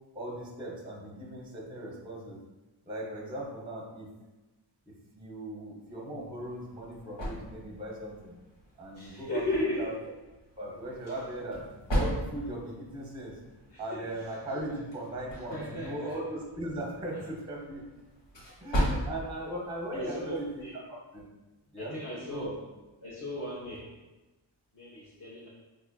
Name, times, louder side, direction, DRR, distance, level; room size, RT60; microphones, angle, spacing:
voice 1, 0.1-2.4 2.9-4.1 4.9-8.3 8.8-9.9 10.6-11.6 11.9-13.4 13.8-17.8 18.6-20.6 20.9-21.2 21.7-22.6, right 1 dB, 10° right, -3 dB, 0.6 m, -38 dB
sound 1, 6.3-20.8, equal, 90° left, 1.4 m, -38 dB
voice 2, 9.0-9.9 13.7-14.0 15.5-16.1 19.9-20.7 21.8-22.5 23.0-23.8 24.8-25.5, left 1 dB, 50° left, -7 dB, 0.7 m, -35 dB
5.1 x 2.3 x 2.2 m, 1.1 s
wide cardioid pair, 135°, 43 cm